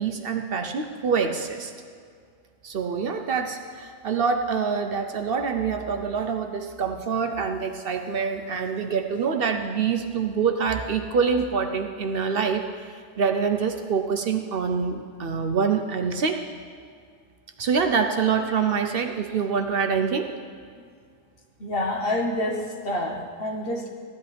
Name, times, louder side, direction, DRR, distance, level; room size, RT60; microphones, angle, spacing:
voice 1, 0.0-1.7 2.6-12.9 13.2-16.4 17.6-20.3, right 6 dB, 60° right, 6 dB, 0.8 m, -25 dB
voice 2, 21.6-23.9, left 1 dB, 55° left, 1 dB, 1.4 m, -28 dB
15.0 x 10.5 x 3.4 m, 2.1 s
omnidirectional pair, 1.2 m